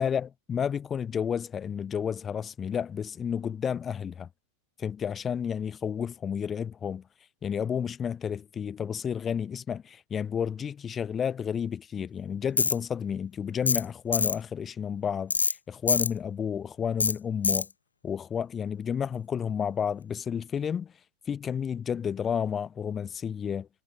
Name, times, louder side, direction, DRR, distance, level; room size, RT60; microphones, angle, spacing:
voice 1, 0.0-4.3 4.8-7.1 7.4-17.7 18.0-20.9 21.3-23.7, left 7 dB, 20° left, 1.9 m, -31 dB
Tools, 12.6-12.8 13.7-13.9 14.1-14.4 15.3-15.5 15.9-16.1 17.0-17.1 17.4-17.7, left 5 dB, 75° left, 0.3 m, -24 dB
figure-of-eight pair, 90°, 0 cm